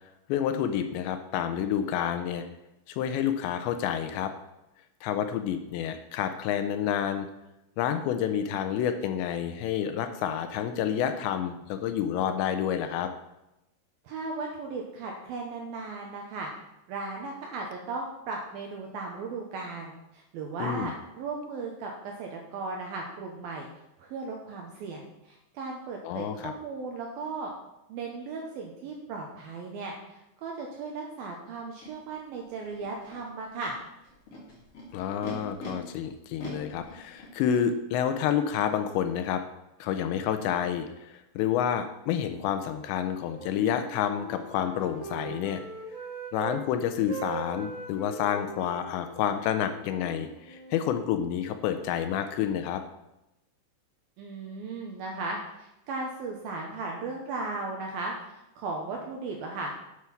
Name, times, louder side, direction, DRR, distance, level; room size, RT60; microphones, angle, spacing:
voice 1, 0.3-2.4 2.9-4.3 5.0-7.3 7.8-13.1 20.6-20.9 26.0-26.5 34.9-39.4 39.8-45.6 46.3-52.8, left 9 dB, 80° left, 8 dB, 2.8 m, -29 dB
voice 2, 14.0-16.5 16.9-23.7 24.0-27.5 27.9-33.8 54.2-59.7, right 3 dB, 75° right, 1 dB, 2.3 m, -36 dB
Animal, 31.8-31.9 32.7-33.2 34.0-35.7 36.4-37.6, left 2 dB, 40° left, 2.6 m, -43 dB
Wind instrument woodwind instrument, 43.2-46.6 46.9-50.8, right 4 dB, 35° right, 2.2 m, -41 dB
8.4 x 8.0 x 5.8 m, 0.91 s
omnidirectional pair, 5.4 m